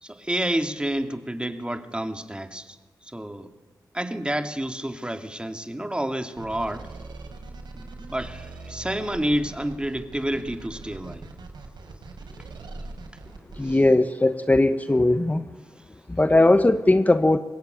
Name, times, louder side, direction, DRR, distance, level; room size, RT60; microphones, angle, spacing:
voice 1, 0.0-2.8 3.0-3.5 3.9-6.9 7.7-11.3 13.6-13.8, right 1 dB, 15° right, 7 dB, 2.6 m, -29 dB
sound 1, 6.4-13.7, right 3 dB, 80° right, 6.1 m, -41 dB
voice 2, 13.6-15.5 16.1-17.4, left 2 dB, 20° left, 10 dB, 1.1 m, -19 dB
24.0 x 20.5 x 9.3 m, 1.3 s
cardioid pair, 50°, 7 cm